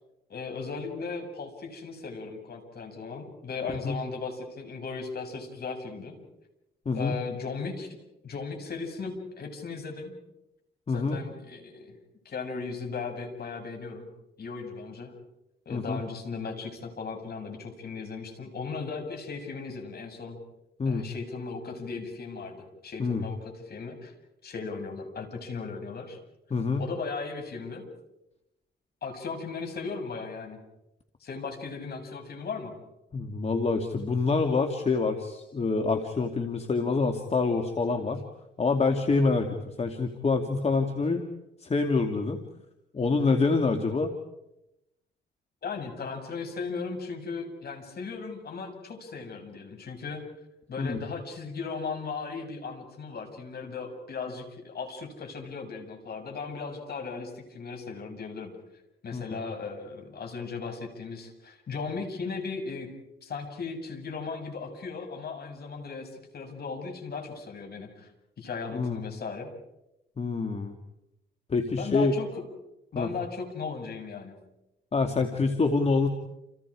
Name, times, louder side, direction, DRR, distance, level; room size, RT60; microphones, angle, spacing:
voice 1, 0.3-6.2 6.9-8.0 8.2-10.1 10.9-12.0 12.3-14.1 14.4-15.1 15.7-20.4 20.9-24.1 24.4-26.2 26.8-27.8 29.0-30.6 31.2-32.7 45.6-50.2 50.7-58.5 59.0-62.9 63.2-68.1 68.4-69.5 71.8-72.4 72.9-74.3, left 4 dB, 50° left, 4 dB, 7.2 m, -37 dB
voice 2, 6.9-7.2 10.9-11.2 15.7-16.0 20.8-21.1 23.0-23.2 26.5-26.8 33.1-38.2 38.6-39.5 39.8-41.2 41.6-42.4 42.9-44.1 50.8-51.0 59.1-59.2 68.7-69.0 70.2-70.8 71.5-72.1 73.0-73.1 74.9-76.1, left 4 dB, 30° left, 4 dB, 2.5 m, -26 dB
30.0 x 29.5 x 5.0 m, 0.89 s
cardioid pair, 90°, 20 cm